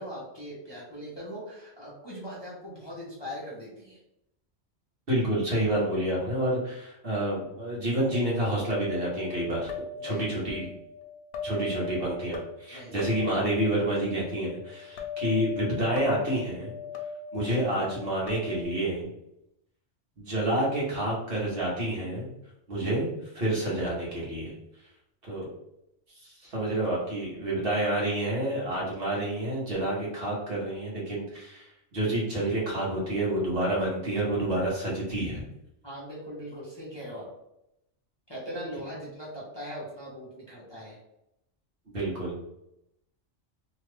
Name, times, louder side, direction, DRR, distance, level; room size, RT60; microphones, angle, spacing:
voice 1, 0.0-4.0 9.9-10.5 12.7-13.0 35.8-37.3 38.3-41.0, equal, 25° left, -7 dB, 0.8 m, -40 dB
voice 2, 5.1-9.7 10.0-10.7 11.4-16.7 17.3-19.1 20.2-22.3 22.7-24.5 25.3-25.5 26.2-31.7 31.9-35.4 41.9-42.4, right 1 dB, 55° right, -5 dB, 1.3 m, -29 dB
sound 1, 8.1-18.6, left 6 dB, 70° left, 0.8 m, -39 dB
2.9 x 2.4 x 3.2 m, 0.82 s
omnidirectional pair, 1.2 m